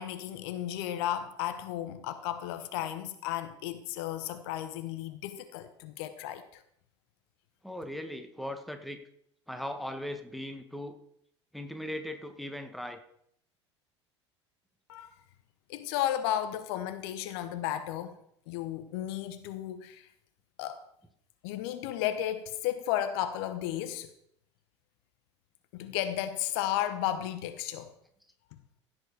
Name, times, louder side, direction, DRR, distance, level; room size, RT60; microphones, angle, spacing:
voice 1, 0.0-6.6 14.9-15.1 15.7-18.1 18.5-20.1 20.6-20.8 21.4-24.1 25.7-27.9, left 11 dB, 55° left, 1.0 m, -34 dB
voice 2, 7.6-9.0 9.5-11.0 11.5-13.0, left 1 dB, ahead, 1.7 m, -38 dB
16.0 x 7.8 x 4.8 m
figure-of-eight pair, 70°, 15 cm